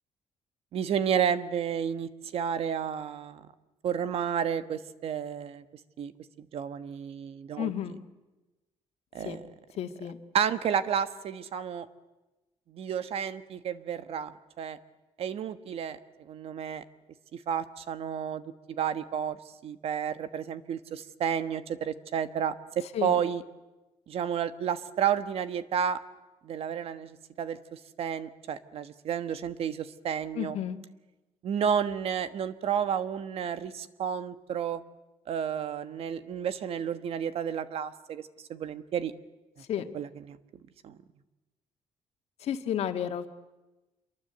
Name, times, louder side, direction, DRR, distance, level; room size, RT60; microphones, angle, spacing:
voice 1, 0.7-3.5 3.8-5.6 6.0-6.1 6.4-7.7 9.1-9.5 10.3-11.9 12.7-14.8 15.2-16.8 17.3-18.4 18.7-19.4 19.6-23.4 24.1-26.0 26.4-30.6 31.4-34.8 35.3-38.2 38.5-39.1 39.9-40.4 40.8-41.0, right 8 dB, 60° right, 12 dB, 1.3 m, -31 dB
voice 2, 7.6-8.0 9.2-9.4 9.8-10.2 22.9-23.2 30.4-30.8 39.7-39.9 42.4-43.3, left 10 dB, 70° left, 6 dB, 1.9 m, -32 dB
27.5 x 23.0 x 8.0 m, 1.1 s
cardioid pair, 145°, 11 cm